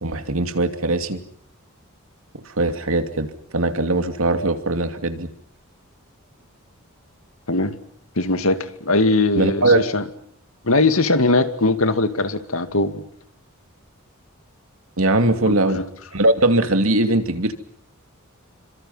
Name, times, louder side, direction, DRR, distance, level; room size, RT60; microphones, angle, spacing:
voice 1, 0.0-1.2 2.4-3.3 3.5-5.3 9.3-9.8 15.0-15.8 16.1-17.5, right 2 dB, 70° right, 8 dB, 2.7 m, -20 dB
voice 2, 8.2-10.1 10.6-13.0 15.5-15.8, left 2 dB, 70° left, 9 dB, 2.3 m, -20 dB
29.0 x 26.0 x 5.7 m, 0.65 s
head